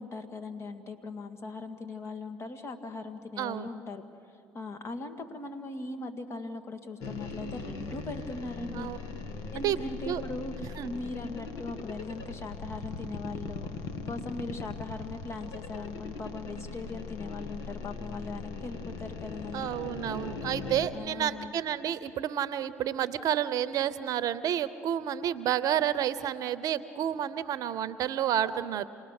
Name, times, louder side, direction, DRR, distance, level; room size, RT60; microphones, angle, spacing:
voice 1, 0.0-4.0 4.5-8.9 9.5-13.7 14.1-19.7 20.9-21.5, left 3 dB, 40° left, 7 dB, 2.0 m, -39 dB
voice 2, 3.4-3.7 8.7-9.0 9.6-9.8 10.1-10.2 10.8-10.9 19.5-28.9, right 10 dB, 55° right, 15 dB, 0.8 m, -30 dB
sound 1, 7.0-20.9, left 4 dB, 70° left, 1.6 m, -40 dB
28.0 x 20.0 x 6.6 m, 2.5 s
hypercardioid pair, 70°, 7 cm